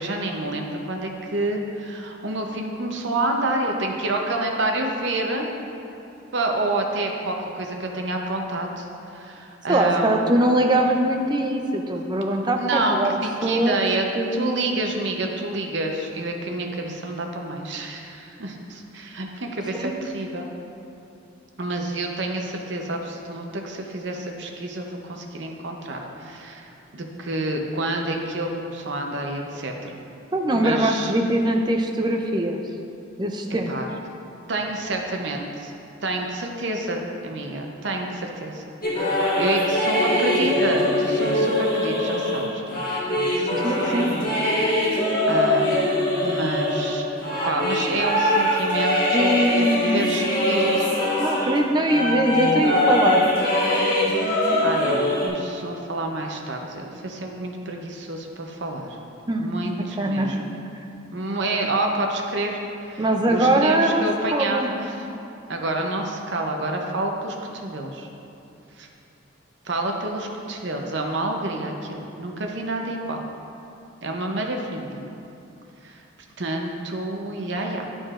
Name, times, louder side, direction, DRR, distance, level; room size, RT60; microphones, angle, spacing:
voice 1, 0.0-5.5 6.3-10.3 12.6-14.0 14.3-20.5 21.6-30.0 30.5-31.1 33.7-33.9 34.5-35.7 36.0-38.6 38.9-42.9 43.1-44.4 44.7-45.8 46.2-47.1 47.4-50.9 54.2-59.0 59.4-60.6 61.1-62.6 62.9-65.1 65.5-68.1 68.8-68.9 69.6-73.2 74.0-75.0 75.8-76.0 76.4-77.9, right 2 dB, 65° right, 2 dB, 0.7 m, -28 dB
voice 2, 9.7-13.1 13.4-13.8 14.2-14.4 19.8-19.9 30.3-32.6 33.2-33.7 43.6-44.2 49.1-50.1 51.2-53.2 59.3-59.6 60.0-60.4 63.0-64.0 64.3-64.7, right 1 dB, 20° right, 3 dB, 0.4 m, -22 dB
sound 1, 38.8-51.6 51.9-55.3, left 1 dB, 45° left, 1.5 m, -22 dB
11.0 x 5.1 x 2.5 m, 2.8 s
head